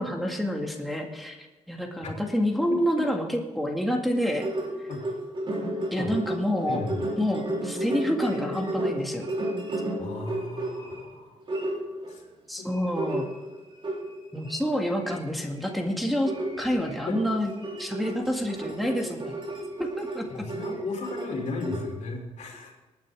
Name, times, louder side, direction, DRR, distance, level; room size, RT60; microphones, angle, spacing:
voice 1, 0.0-4.5 5.9-6.8 7.2-9.3 12.5-13.2 14.3-16.3 16.6-17.5 17.8-19.3 19.8-20.3, equal, ahead, 0 dB, 2.0 m, -28 dB
sound 1, 4.1-11.0 11.5-12.2 12.7-14.6 15.0-15.3 15.6-15.8 16.2-21.9, right 1 dB, 40° right, 3.6 m, -33 dB
voice 2, 6.7-7.1 10.0-11.4 12.1-12.2 12.6-13.0 17.0-17.2 20.3-22.8, left 3 dB, 70° left, 0 dB, 3.4 m, -35 dB
19.0 x 9.6 x 3.6 m, 1.2 s
cardioid pair, 100°, 12 cm